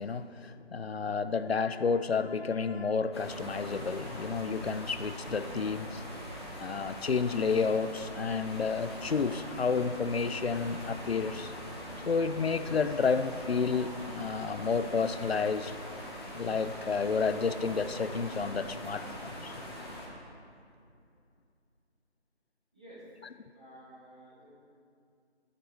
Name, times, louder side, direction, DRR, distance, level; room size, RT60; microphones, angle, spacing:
voice 1, 0.0-6.0 6.6-11.5 12.1-15.7 16.3-19.6, left 5 dB, 65° left, 12 dB, 0.5 m, -30 dB
sound 1, 3.1-20.1, left 1 dB, 25° left, 1.5 m, -42 dB
voice 2, 22.7-23.1 23.5-24.5, right 1 dB, 5° right, -13 dB, 1.1 m, -52 dB
14.5 x 7.5 x 3.2 m, 2.4 s
figure-of-eight pair, 165°, 34 cm